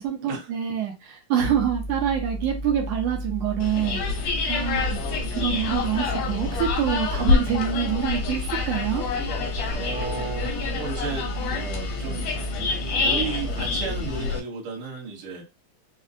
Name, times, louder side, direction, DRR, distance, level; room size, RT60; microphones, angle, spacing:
voice 1, 0.0-5.0 5.3-9.0, right 9 dB, 75° right, 1 dB, 2.2 m, -26 dB
sound 1, 1.5-14.2, equal, 90° left, 2.1 m, -33 dB
sound 2, 3.6-14.4, left 5 dB, 75° left, 1.6 m, -27 dB
voice 2, 4.6-4.9 7.1-7.3 9.7-12.3 12.6-15.4, right 5 dB, 60° right, -2 dB, 1.6 m, -34 dB
5.2 x 2.2 x 2.6 m, 0.26 s
omnidirectional pair, 3.6 m